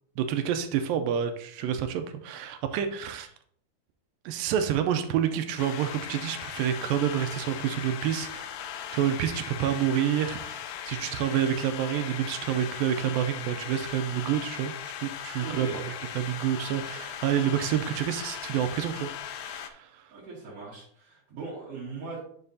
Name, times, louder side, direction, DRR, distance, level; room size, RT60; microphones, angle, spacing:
voice 1, 0.2-3.3 4.3-14.7 15.0-15.8 16.2-20.0, right 9 dB, 80° right, 8 dB, 2.2 m, -28 dB
sound 1, 5.6-19.7, left 9 dB, 90° left, 2.5 m, -38 dB
voice 2, 15.4-15.9 20.1-22.2, right 4 dB, 45° right, -10 dB, 2.7 m, -39 dB
9.8 x 5.7 x 2.7 m, 0.62 s
omnidirectional pair, 4.3 m